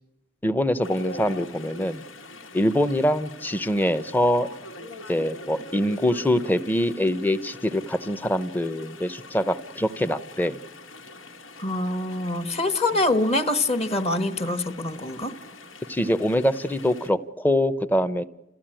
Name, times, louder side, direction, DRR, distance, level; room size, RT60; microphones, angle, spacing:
voice 1, 0.4-2.0 2.5-4.5 5.1-10.6 15.9-18.3, left 1 dB, 10° left, 13 dB, 0.7 m, -24 dB
Chatter / Stream, 0.8-17.1, left 1 dB, 85° left, 1.9 m, -43 dB
voice 2, 11.6-15.3, left 2 dB, 30° left, 10 dB, 1.2 m, -25 dB
30.0 x 14.5 x 8.9 m, 0.97 s
head